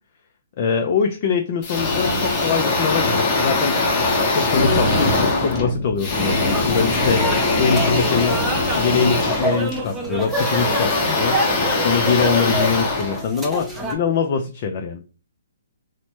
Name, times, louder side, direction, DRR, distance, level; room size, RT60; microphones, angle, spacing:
voice 1, 0.6-3.8 4.3-8.4 8.7-11.4 11.8-15.0, left 6 dB, 45° left, 4 dB, 0.4 m, -23 dB
sound 1, 1.6-13.8, left 2 dB, 30° left, 0.8 m, -21 dB
sound 2, 6.5-13.9, right 1 dB, 5° right, 0.6 m, -27 dB
3.1 x 2.1 x 2.9 m, 0.35 s
hypercardioid pair, 140°, 0 cm